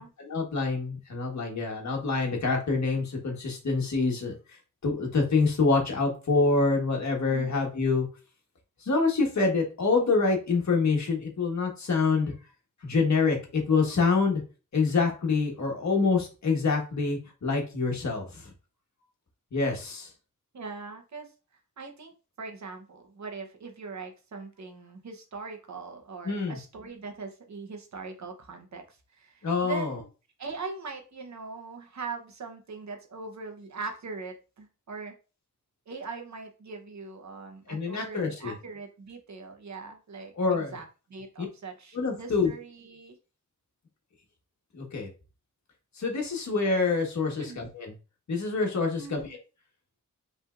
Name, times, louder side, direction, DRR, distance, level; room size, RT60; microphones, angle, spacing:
voice 1, 0.0-4.3 4.8-8.1 8.8-12.3 12.8-14.4 14.7-18.5 19.5-20.1 26.2-26.6 29.4-30.0 37.7-38.5 40.3-40.7 41.4-41.5 41.9-42.5 44.7-45.1 46.0-47.9 48.3-49.2, left 4 dB, 60° left, 1 dB, 1.4 m, -26 dB
voice 2, 20.5-21.3 21.8-22.1 22.4-30.1 30.4-35.1 35.9-43.2 47.4-47.6 49.0-49.4, right 4 dB, 60° right, 4 dB, 1.0 m, -41 dB
5.4 x 3.4 x 2.5 m, 0.33 s
wide cardioid pair, 140°, 32 cm